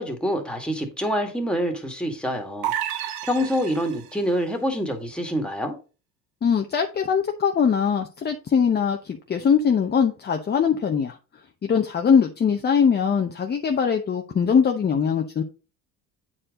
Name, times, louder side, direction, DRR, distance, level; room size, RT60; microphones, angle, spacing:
voice 1, 0.0-5.8, equal, 5° left, 1.9 m, -26 dB
sound 1, 2.6-4.3, right 11 dB, 75° right, 0.9 m, -30 dB
voice 2, 6.4-11.2 11.6-15.4, left 6 dB, 25° left, 0.8 m, -21 dB
8.5 x 4.6 x 3.7 m
supercardioid pair, 100°, 36 cm